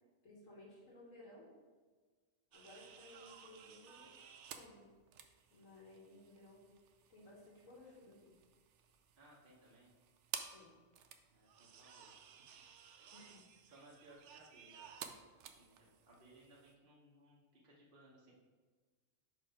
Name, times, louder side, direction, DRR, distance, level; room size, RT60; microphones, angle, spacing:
voice 1, 0.2-1.5 2.5-4.8 5.5-6.7 7.1-8.3 10.5-10.7 13.1-13.4, left 1 dB, 80° left, -6 dB, 1.7 m, -58 dB
sound 1, 2.5-16.7, right 8 dB, 70° right, 0.8 m, -54 dB
voice 2, 9.2-9.9 11.3-12.1 13.7-15.1 15.6-18.3, right 1 dB, 45° right, -5 dB, 1.1 m, -63 dB
5.7 x 4.6 x 4.5 m, 1.4 s
omnidirectional pair, 1.4 m